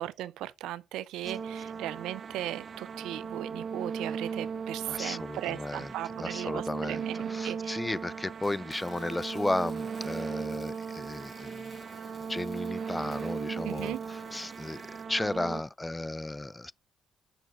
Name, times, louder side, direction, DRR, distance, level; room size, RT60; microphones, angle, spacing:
voice 1, 0.0-7.8 13.5-14.0, right 13 dB, 80° right, 0.4 m, -37 dB
sound 1, 1.2-15.6, right 6 dB, 55° right, 0.8 m, -37 dB
voice 2, 4.9-5.9 6.2-7.0 7.3-11.7 12.3-14.8 15.1-16.7, left 2 dB, 15° left, 0.4 m, -34 dB
sound 2, 8.4-15.1, left 4 dB, 50° left, 3.9 m, -58 dB
Bowed string instrument, 8.9-14.6, left 6 dB, 85° left, 1.3 m, -57 dB
7.1 x 5.9 x 4.8 m
supercardioid pair, 55°, 0 cm